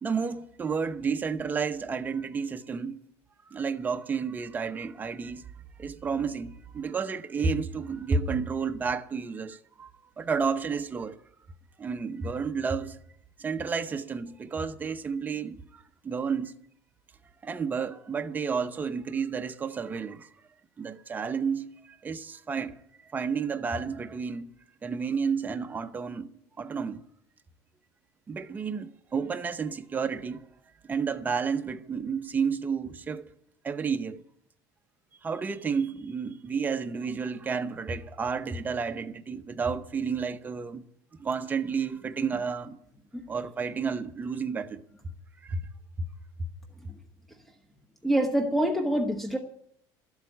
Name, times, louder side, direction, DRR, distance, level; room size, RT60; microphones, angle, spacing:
voice 1, 0.0-3.0 3.5-5.4 5.8-9.9 10.2-11.2 11.8-13.0 13.4-16.5 17.4-20.3 20.8-22.8 23.1-24.5 24.8-26.3 26.6-27.0 28.3-30.5 30.9-33.3 33.6-34.2 35.2-40.8 41.2-42.8 43.3-45.1 45.4-45.6 46.0-46.1, right 5 dB, 20° right, 0.8 m, -31 dB
voice 2, 48.0-49.4, right 1 dB, ahead, 1.1 m, -25 dB
13.0 x 8.1 x 9.3 m
cardioid pair, 135°, 9 cm